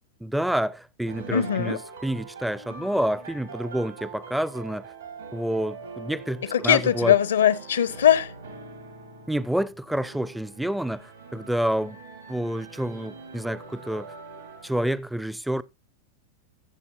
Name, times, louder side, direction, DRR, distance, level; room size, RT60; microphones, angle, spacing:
voice 1, 0.2-4.9 5.3-7.2 9.3-12.0 12.3-14.1 14.6-15.6, right 1 dB, ahead, 0.4 m, -28 dB
sound 1, 1.1-14.9, right 4 dB, 80° right, 2.4 m, -43 dB
voice 2, 1.3-1.8 6.5-8.3, left 9 dB, 65° left, 0.6 m, -20 dB
14.0 x 7.2 x 2.7 m
figure-of-eight pair, 90°, 0 cm